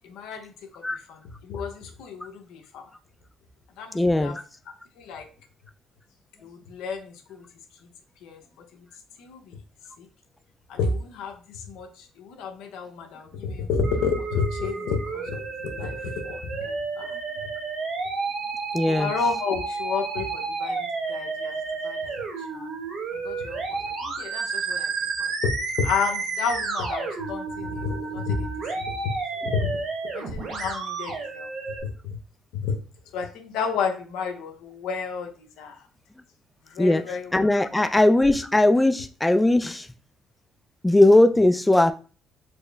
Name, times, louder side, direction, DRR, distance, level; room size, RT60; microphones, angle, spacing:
voice 1, 0.0-2.8 3.8-4.4 5.0-5.3 6.4-7.5 8.2-8.9 9.2-9.6 10.0-10.1 10.7-17.1 18.9-21.6 21.8-22.7 23.1-24.9 25.2-25.5 25.8-29.0 29.4-29.8 30.1-31.5 31.8-32.2 32.6-32.8 33.1-35.9 36.6-37.4 37.8-37.9, left 5 dB, 80° left, 4 dB, 0.8 m, -31 dB
voice 2, 3.9-4.4 18.7-19.1 36.8-39.9 40.8-41.9, left 1 dB, 10° left, 8 dB, 0.3 m, -19 dB
Musical instrument, 13.8-31.8, right 4 dB, 60° right, 1.2 m, -31 dB
4.3 x 2.0 x 3.3 m, 0.36 s
cardioid pair, 85°, 0 cm